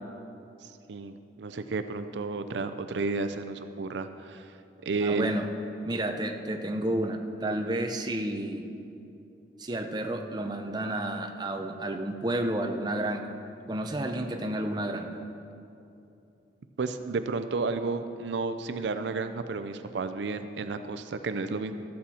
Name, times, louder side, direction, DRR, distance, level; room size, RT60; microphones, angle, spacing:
voice 1, 0.9-4.5 4.8-5.3 16.8-21.7, right 4 dB, 75° right, 9 dB, 0.5 m, -32 dB
voice 2, 5.0-5.5 5.8-8.6 9.6-13.3 13.7-15.1, right 1 dB, 25° right, 4 dB, 0.6 m, -31 dB
14.0 x 8.6 x 4.2 m, 2.7 s
head